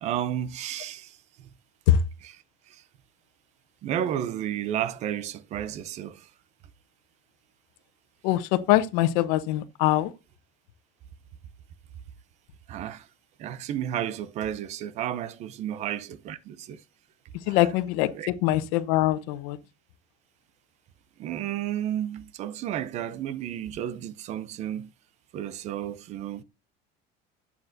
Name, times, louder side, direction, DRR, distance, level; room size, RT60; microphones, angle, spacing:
voice 1, 0.0-1.5 2.7-2.8 3.8-6.3 12.7-13.1 13.4-16.8 17.4-17.6 18.1-18.3 21.2-24.9 25.3-26.4, right 11 dB, 35° right, 0.6 m, -32 dB
voice 2, 8.2-10.1 17.5-19.6, left 13 dB, 85° left, 1.0 m, -23 dB
12.0 x 8.5 x 2.6 m
cardioid pair, 180°, 19 cm